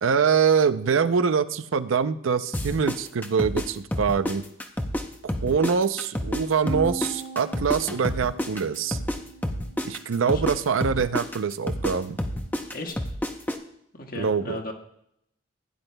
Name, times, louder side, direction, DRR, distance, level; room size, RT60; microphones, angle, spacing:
voice 1, 0.0-4.4 5.2-9.0 9.8-12.2 14.2-14.6, right 6 dB, 80° right, 13 dB, 0.5 m, -24 dB
sound 1, 2.5-5.0 5.3-9.2 9.4-13.6, left 1 dB, 10° left, 0.6 m, -29 dB
Bass guitar, 6.6-12.9, right 2 dB, 50° right, 1.5 m, -42 dB
voice 2, 13.9-14.7, left 2 dB, 45° left, 3 dB, 1.3 m, -35 dB
16.0 x 9.8 x 2.2 m, 0.75 s
head